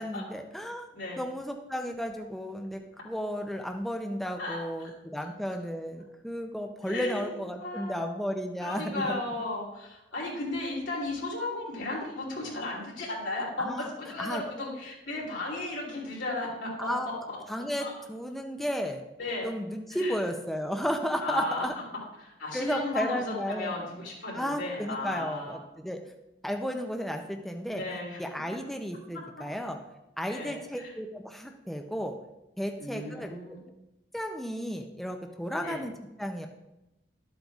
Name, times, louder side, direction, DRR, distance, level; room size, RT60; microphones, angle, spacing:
voice 1, 0.0-0.9 1.2-9.2 13.6-13.9 14.2-14.4 16.8-17.1 17.5-19.0 19.4-21.7 22.5-23.7 24.3-26.0 26.4-27.8 28.2-29.8 30.2-32.2 32.6-33.3 34.1-35.9 36.2-36.5, equal, ahead, 3 dB, 0.4 m, -33 dB
voice 2, 4.4-4.9 6.8-8.1 8.6-17.4 17.8-18.0 19.2-19.5 19.9-20.2 21.2-21.7 22.2-25.6 27.7-28.3 29.1-29.2 30.3-30.9 32.8-33.6 35.6-35.8, left 2 dB, 90° left, -3 dB, 2.9 m, -35 dB
12.0 x 7.8 x 2.4 m, 0.93 s
head